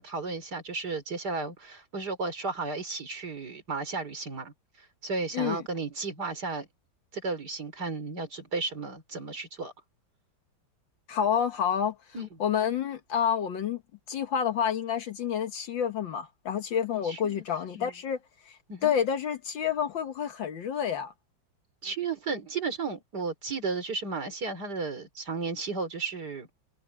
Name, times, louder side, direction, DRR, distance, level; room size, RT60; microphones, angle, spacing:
voice 1, 0.0-4.5 5.0-6.7 7.1-9.7 12.1-12.3 17.0-17.4 17.7-17.9 18.7-18.9 21.8-26.5, right 4 dB, 55° right, 4.6 m, -34 dB
voice 2, 11.1-12.0 12.4-13.8 14.1-18.2 18.5-21.1, left 8 dB, 70° left, 2.0 m, -29 dB
omnidirectional pair, 2.1 m